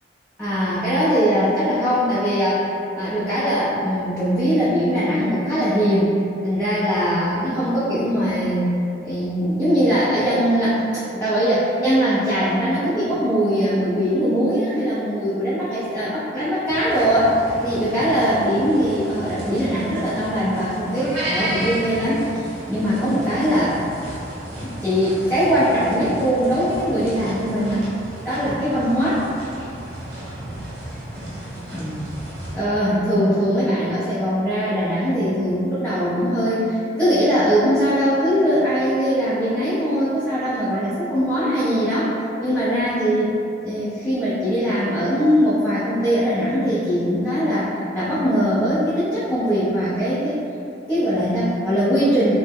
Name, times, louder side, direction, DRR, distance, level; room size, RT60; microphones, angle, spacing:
voice 1, 0.4-2.6 2.9-6.1 6.4-8.7 9.0-22.2 22.7-23.8 24.6-27.8 28.2-29.2 31.7-32.0 32.5-43.4 43.6-50.4 50.9-52.4, equal, 10° left, -13 dB, 0.6 m, -21 dB
sound 1, 16.7-32.6, right 1 dB, 60° right, 1.0 m, -33 dB
3.3 x 2.1 x 3.4 m, 2.6 s
head